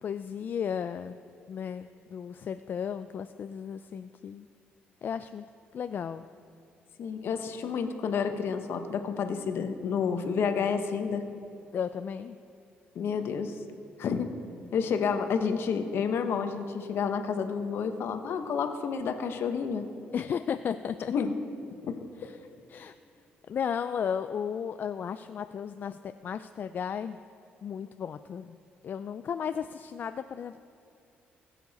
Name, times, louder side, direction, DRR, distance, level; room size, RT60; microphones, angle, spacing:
voice 1, 0.0-1.2 1.5-4.5 5.0-5.4 5.7-6.3 11.7-12.4 20.1-21.1 22.2-22.4 22.7-22.9 23.5-27.2 27.6-28.6 28.8-30.6, left 7 dB, 50° left, 10 dB, 0.3 m, -34 dB
voice 2, 7.0-11.2 12.9-13.5 14.0-14.3 14.7-19.9 21.1-21.3 21.8-22.3, left 6 dB, 70° left, 7 dB, 1.1 m, -30 dB
20.5 x 7.1 x 4.2 m, 2.7 s
cardioid pair, 90°, 4 cm